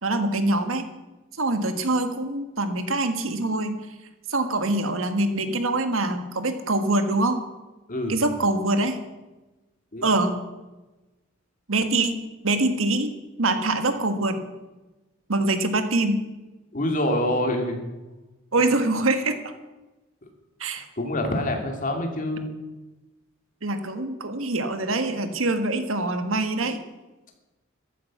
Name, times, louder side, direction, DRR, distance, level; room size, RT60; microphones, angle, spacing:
voice 1, 0.0-0.9 1.4-3.8 4.3-7.4 8.1-9.0 10.0-10.4 11.7-12.2 12.4-13.1 13.4-14.4 15.3-16.2 18.5-19.5 20.6-20.8 23.6-26.8, right 2 dB, 90° right, 8 dB, 1.6 m, -24 dB
voice 2, 7.9-8.2 9.9-10.1 16.7-17.8 20.2-20.3 20.9-22.5, left 1 dB, 40° left, 3 dB, 2.6 m, -26 dB
14.0 x 12.5 x 6.0 m, 1.1 s
head